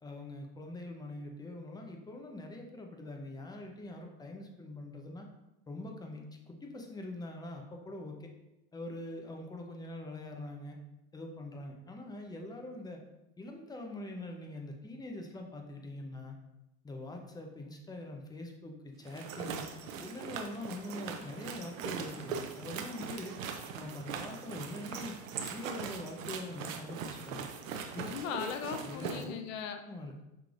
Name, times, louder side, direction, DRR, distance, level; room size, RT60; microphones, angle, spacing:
voice 1, 0.0-5.3 5.7-8.3 8.7-10.8 11.1-13.0 13.4-16.3 16.8-19.7 20.0-23.4 23.7-25.2 25.5-27.5 27.9-28.5 28.8-29.4 29.9-30.1, left 1 dB, 10° left, 2 dB, 0.6 m, -43 dB
sound 1, 19.0-29.3, right 6 dB, 90° right, 0.6 m, -41 dB
voice 2, 28.0-29.8, left 7 dB, 80° left, 7 dB, 0.6 m, -38 dB
5.6 x 3.4 x 2.5 m, 0.91 s
hypercardioid pair, 100°, 39 cm